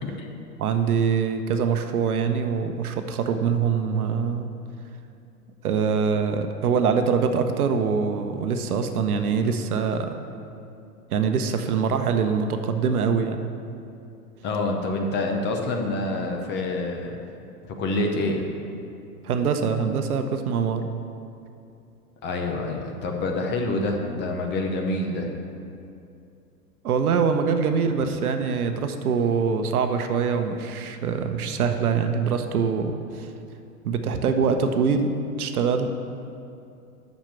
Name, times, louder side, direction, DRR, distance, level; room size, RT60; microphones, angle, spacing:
voice 1, 0.0-0.3 14.4-17.2 17.6-18.4 22.2-25.3, left 2 dB, 20° left, 2 dB, 0.9 m, -27 dB
voice 2, 0.6-4.5 5.6-10.1 11.1-13.4 19.2-20.8 26.8-33.3 33.8-35.1 35.4-35.9, right 6 dB, 65° right, 7 dB, 0.9 m, -24 dB
7.4 x 6.6 x 7.0 m, 2.6 s
hypercardioid pair, 110°, 48 cm